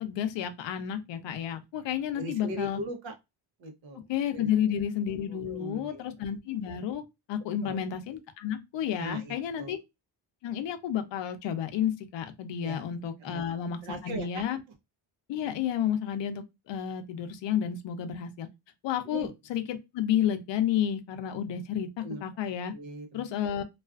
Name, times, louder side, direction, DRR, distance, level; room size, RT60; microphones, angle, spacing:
voice 1, 0.0-2.8 4.1-7.0 7.3-9.8 10.4-13.8 14.0-14.6 15.3-18.5 18.8-22.7 23.1-23.6, left 9 dB, 65° left, 0.6 m, -31 dB
voice 2, 2.1-3.1 3.6-4.1 4.3-4.8 5.3-6.0 7.6-7.8 9.0-9.8 12.6-13.4 13.8-14.4 19.0-19.3 22.0-22.2 22.7-23.2, right 1 dB, 70° right, 0.8 m, -40 dB
2.4 x 2.3 x 2.3 m
cardioid pair, 115°, 48 cm